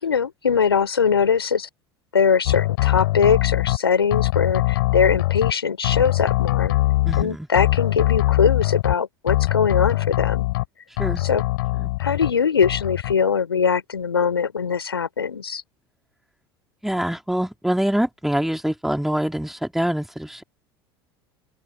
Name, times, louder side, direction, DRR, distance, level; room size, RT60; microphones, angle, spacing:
voice 1, 0.0-1.7 2.1-6.8 7.2-10.5 11.2-11.5 12.0-15.6, left 6 dB, 80° left, 4.3 m, -21 dB
sound 1, 2.5-3.8 4.1-5.5 5.8-7.2 7.6-8.9 9.3-10.7 11.0-12.3 12.6-13.1, left 19 dB, 60° left, 6.9 m, -22 dB
voice 2, 7.0-7.5 11.0-11.2 11.7-11.9 16.8-20.4, equal, ahead, 3.3 m, -25 dB
open air
figure-of-eight pair, 75°, 13 cm